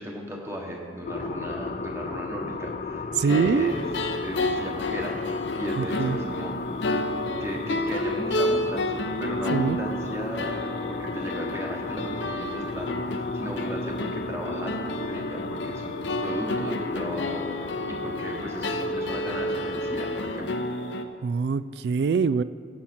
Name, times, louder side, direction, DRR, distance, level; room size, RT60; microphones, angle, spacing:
voice 1, 0.0-3.9 4.2-5.2 5.5-6.9 7.4-15.9 16.2-20.7, equal, 15° right, 0 dB, 1.3 m, -36 dB
sound 1, 1.1-20.5, left 4 dB, 45° left, 0.4 m, -36 dB
voice 2, 3.2-3.7 5.8-6.2 9.5-9.8 21.2-22.4, right 5 dB, 70° right, 16 dB, 0.3 m, -24 dB
sound 2, 3.3-21.0, left 1 dB, 90° left, 0.7 m, -30 dB
16.5 x 7.2 x 4.4 m, 2.4 s
head